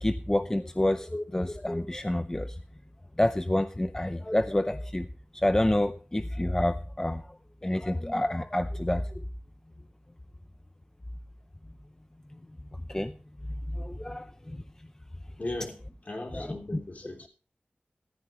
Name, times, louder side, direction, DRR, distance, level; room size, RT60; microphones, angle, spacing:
voice 1, 0.0-2.6 3.2-5.1 5.3-7.2 7.6-9.2 12.9-13.1 13.7-14.6 16.3-16.6, left 1 dB, 15° left, 10 dB, 0.6 m, -28 dB
voice 2, 15.4-15.7 16.1-17.3, left 2 dB, 50° left, 2 dB, 3.0 m, -37 dB
15.0 x 14.0 x 3.0 m, 0.36 s
wide cardioid pair, 80°, 4 cm